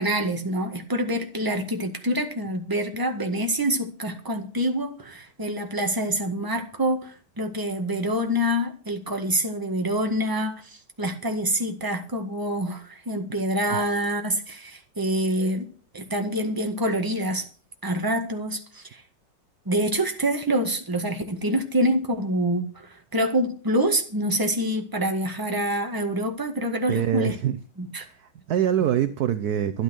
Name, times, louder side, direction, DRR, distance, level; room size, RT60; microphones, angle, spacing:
voice 1, 0.0-15.7 15.9-17.5 17.8-19.0 19.6-27.3 27.8-28.1, equal, 10° right, 5 dB, 1.6 m, -26 dB
voice 2, 26.9-27.6 28.1-29.8, right 10 dB, 60° right, 12 dB, 1.1 m, -24 dB
13.0 x 10.5 x 6.3 m, 0.42 s
omnidirectional pair, 2.1 m